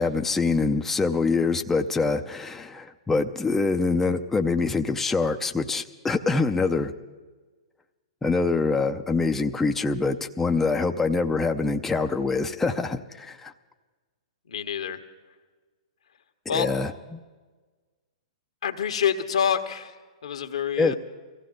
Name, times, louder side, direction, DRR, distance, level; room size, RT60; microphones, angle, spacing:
voice 1, 0.0-6.9 8.2-13.5 16.5-17.2 20.8-20.9, left 3 dB, 10° left, 5 dB, 0.6 m, -25 dB
voice 2, 14.4-15.0 16.5-16.7 18.6-21.0, left 8 dB, 75° left, 7 dB, 1.4 m, -27 dB
23.0 x 15.5 x 3.9 m, 1.3 s
hypercardioid pair, 120°, 3 cm